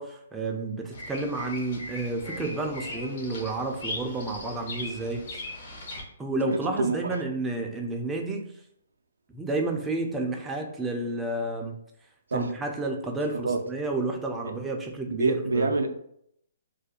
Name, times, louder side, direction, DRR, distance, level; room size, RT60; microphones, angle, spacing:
voice 1, 0.0-5.4 6.2-8.5 9.3-11.8 12.3-15.7, right 2 dB, 10° right, 1 dB, 0.3 m, -31 dB
Bird vocalization bird call bird song, 0.9-6.0, left 2 dB, 55° left, 0.7 m, -39 dB
voice 2, 6.5-7.0 12.3-12.5 13.4-13.6 14.4-14.6 15.1-15.9, right 3 dB, 90° right, 5 dB, 0.3 m, -26 dB
2.4 x 2.2 x 2.8 m, 0.72 s
hypercardioid pair, 145°, 0 cm